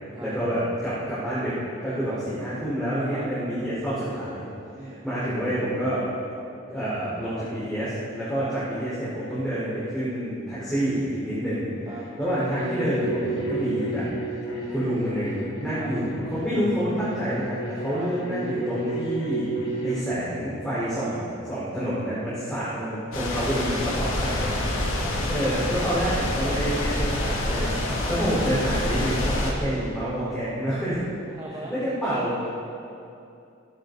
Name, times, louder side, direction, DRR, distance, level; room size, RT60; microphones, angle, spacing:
voice 1, 0.2-4.4 5.0-6.0 6.7-11.7 12.2-14.1 14.7-19.5 19.8-24.5 25.3-27.8 28.1-31.0 31.7-32.4, equal, 5° left, -12 dB, 4.6 m, -28 dB
sound 1, 12.2-20.1, right 2 dB, 75° left, 4.0 m, -32 dB
sound 2, 23.1-29.5, left 1 dB, 90° left, 2.9 m, -27 dB
voice 2, 31.3-31.8, right 1 dB, 20° right, -5 dB, 1.8 m, -40 dB
27.5 x 11.0 x 4.1 m, 2.6 s
head